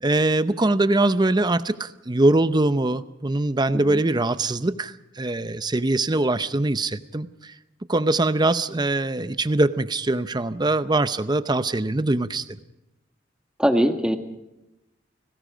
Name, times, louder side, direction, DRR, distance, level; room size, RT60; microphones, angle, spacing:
voice 1, 0.0-7.5 7.9-12.4, right 2 dB, 25° right, 13 dB, 0.7 m, -22 dB
voice 2, 13.6-14.2, equal, 5° right, 5 dB, 1.6 m, -21 dB
30.0 x 19.5 x 5.1 m, 0.95 s
head